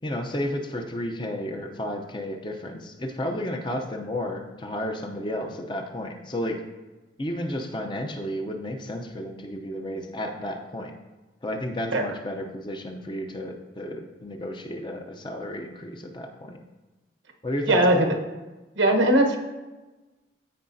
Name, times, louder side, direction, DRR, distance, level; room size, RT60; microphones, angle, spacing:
voice 1, 0.0-6.6 7.2-10.9 11.4-16.6 17.4-18.0, left 1 dB, 25° left, 3 dB, 0.6 m, -32 dB
voice 2, 17.7-18.1 18.8-19.4, right 1 dB, 90° right, 2 dB, 1.0 m, -19 dB
14.0 x 4.9 x 2.7 m, 1.2 s
head